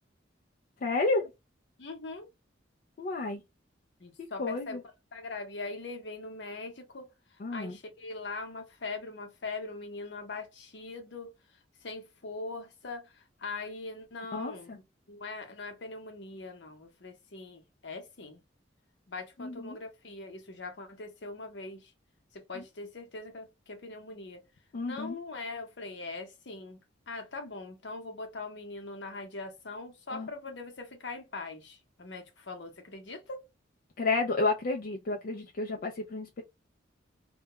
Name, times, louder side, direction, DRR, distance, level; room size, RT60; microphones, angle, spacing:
voice 1, 0.8-1.3 3.0-3.4 4.2-4.8 7.4-7.8 14.3-14.8 19.4-19.8 22.5-22.6 24.7-25.2 30.1-30.3 34.0-36.4, left 3 dB, 50° left, 0.4 m, -31 dB
voice 2, 1.8-2.3 4.0-4.8 5.1-11.3 11.8-14.8 15.1-18.4 19.1-21.9 22.3-24.4 24.8-26.8 27.1-33.5, left 3 dB, 65° left, 0.8 m, -41 dB
2.2 x 2.1 x 2.8 m
head